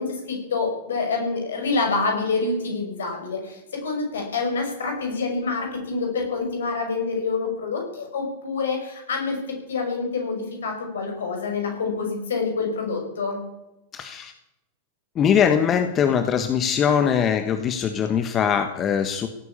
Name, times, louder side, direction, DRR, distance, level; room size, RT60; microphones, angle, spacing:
voice 1, 0.0-13.4, left 4 dB, 65° left, 3 dB, 5.9 m, -27 dB
voice 2, 13.9-14.3 15.1-19.3, left 8 dB, 30° left, 8 dB, 1.3 m, -21 dB
17.0 x 9.6 x 8.5 m, 0.91 s
figure-of-eight pair, 90°, 0 cm